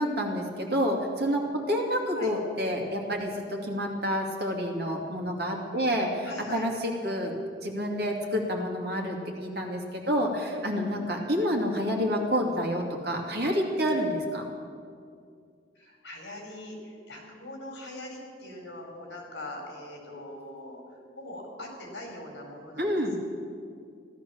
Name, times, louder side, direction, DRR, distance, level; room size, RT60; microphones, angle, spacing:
voice 1, 0.0-7.4 7.6-14.4 22.8-23.2, equal, 60° right, 1 dB, 2.5 m, -28 dB
voice 2, 6.2-6.7 10.7-11.2 15.7-23.2, left 1 dB, 70° left, 1 dB, 4.4 m, -42 dB
16.0 x 13.0 x 7.0 m, 2.3 s
head